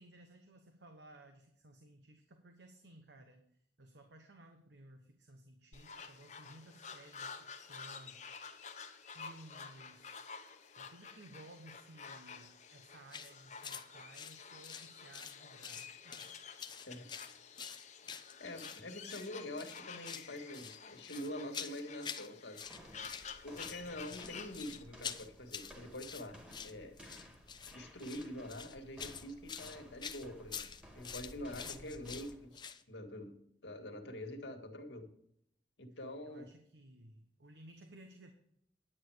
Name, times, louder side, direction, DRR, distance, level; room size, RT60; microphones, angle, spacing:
voice 1, 0.0-8.3 9.1-10.3 10.8-16.4 23.8-24.3 31.6-32.1 36.2-38.3, right 1 dB, 75° right, 5 dB, 1.1 m, -57 dB
saz flamingos, 5.7-24.8, left 6 dB, 40° left, 1.0 m, -51 dB
sound 1, 13.1-13.3 13.6-13.9 14.1-15.4 15.6-16.3 16.6-18.8 19.1-19.3 19.6-20.3 20.5-22.3 22.5-23.3 23.5-32.8, left 7 dB, 25° left, 0.6 m, -46 dB
voice 2, 18.4-22.6 23.4-26.9 27.7-30.7 30.9-35.1 35.8-36.5, left 1 dB, 80° left, 4 dB, 1.8 m, -45 dB
sound 2, 22.6-32.5, equal, 5° right, 1.8 m, -56 dB
10.0 x 8.9 x 4.8 m, 0.70 s
head